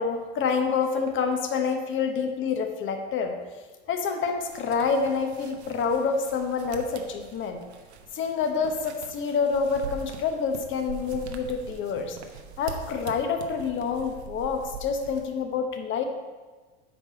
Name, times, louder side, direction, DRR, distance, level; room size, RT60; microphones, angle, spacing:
voice 1, 0.0-3.4 3.9-7.6 8.1-12.2 12.6-16.1, left 5 dB, 35° left, 5 dB, 1.1 m, -27 dB
sound 1, 4.4-15.3, right 5 dB, 85° right, 0.9 m, -43 dB
8.6 x 4.8 x 5.1 m, 1.3 s
hypercardioid pair, 100°, 32 cm